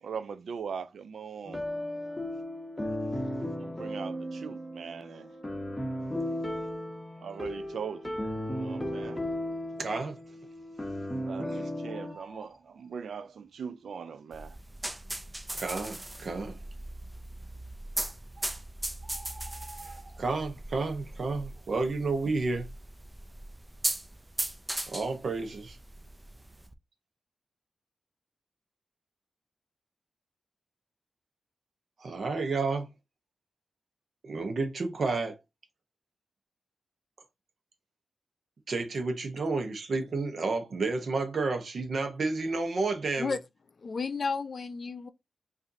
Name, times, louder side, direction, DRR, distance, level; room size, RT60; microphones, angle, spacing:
voice 1, 0.0-1.6 3.6-5.3 7.2-9.2 11.2-14.6, right 6 dB, 85° right, 0.3 m, -40 dB
sound 1, 1.4-12.1, left 1 dB, 10° left, 0.9 m, -35 dB
Bird, 9.0-9.5 9.9-10.0 10.2-11.4 11.7-13.5 14.4-14.5 15.1-15.2 15.4-15.5 16.2-16.6 17.6-17.7 18.0-18.1 18.4-20.6 21.0-21.3 21.6-23.0 23.3-23.6, right 2 dB, 35° right, 1.2 m, -52 dB
voice 2, 9.8-10.2 15.5-16.6 20.2-22.7 24.9-25.8 32.0-32.9 34.2-35.4 38.7-43.4, right 3 dB, 60° right, 0.9 m, -31 dB
sound 2, 14.3-26.7, right 1 dB, 15° right, 0.3 m, -38 dB
voice 3, 43.8-45.1, left 4 dB, 50° left, 0.4 m, -32 dB
4.9 x 2.6 x 2.7 m
wide cardioid pair, 105°, 0 cm